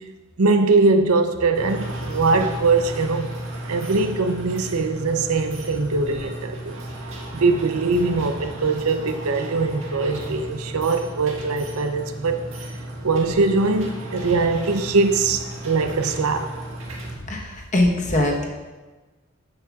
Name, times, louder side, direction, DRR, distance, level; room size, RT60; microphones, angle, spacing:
voice 1, 0.4-3.4 3.7-6.7 7.3-12.4 13.0-16.6, right 3 dB, 90° right, 0.6 m, -21 dB
sound 1, 1.5-17.1, right 1 dB, 70° right, 1.7 m, -34 dB
voice 2, 17.3-18.5, left 1 dB, 35° left, 1.1 m, -21 dB
11.5 x 7.4 x 2.4 m
head